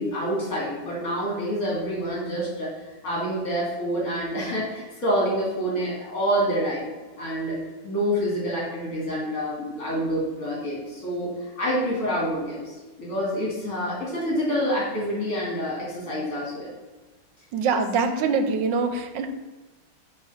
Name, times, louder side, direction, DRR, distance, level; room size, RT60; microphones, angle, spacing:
voice 1, 0.0-2.7 3.0-6.9 7.2-7.6 7.8-16.7, equal, 45° left, -5 dB, 2.8 m, -27 dB
voice 2, 17.5-19.3, right 4 dB, 70° right, 7 dB, 1.3 m, -24 dB
7.5 x 3.5 x 6.3 m, 1.3 s
omnidirectional pair, 2.2 m